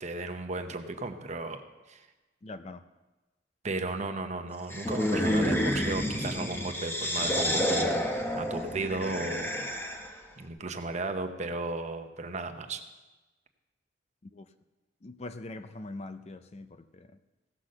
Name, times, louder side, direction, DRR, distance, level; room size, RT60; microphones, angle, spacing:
voice 1, 0.0-1.6 1.9-2.1 3.6-9.6 10.4-12.8, right 2 dB, 40° right, 7 dB, 0.9 m, -35 dB
voice 2, 2.4-2.8 14.3-14.5 15.0-17.1, left 2 dB, 35° left, 10 dB, 0.5 m, -42 dB
sound 1, 4.7-10.2, equal, 15° left, 1.0 m, -29 dB
16.0 x 6.0 x 6.6 m, 1.1 s
head